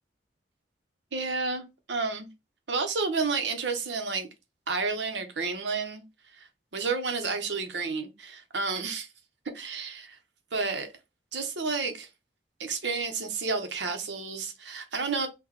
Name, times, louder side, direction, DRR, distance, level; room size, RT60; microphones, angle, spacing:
voice 1, 1.1-2.3 2.7-4.3 4.7-6.0 6.3-6.5 6.7-9.1 9.5-10.2 10.5-10.9 11.3-12.1 12.6-15.3, right 4 dB, 85° right, 1.1 m, -31 dB
6.0 x 2.5 x 3.1 m
head